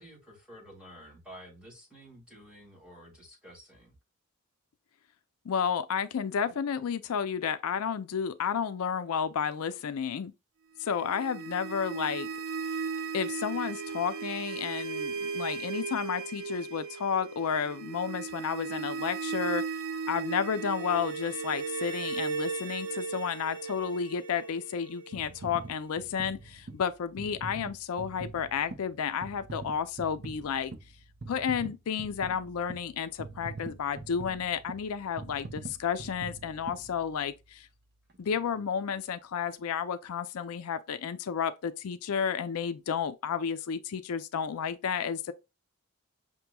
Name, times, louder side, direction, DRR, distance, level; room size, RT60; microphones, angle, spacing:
voice 1, 0.0-4.0, equal, 5° right, 1.9 m, -51 dB
voice 2, 5.5-10.3 10.8-12.3 13.1-19.6 20.1-30.7 31.3-37.7 38.2-45.3, left 7 dB, 80° left, 0.4 m, -32 dB
sound 1, 10.9-25.8, right 5 dB, 80° right, 0.9 m, -36 dB
sound 2, 25.1-37.5 38.1-38.2, right 3 dB, 45° right, 0.6 m, -45 dB
5.9 x 2.9 x 2.2 m
head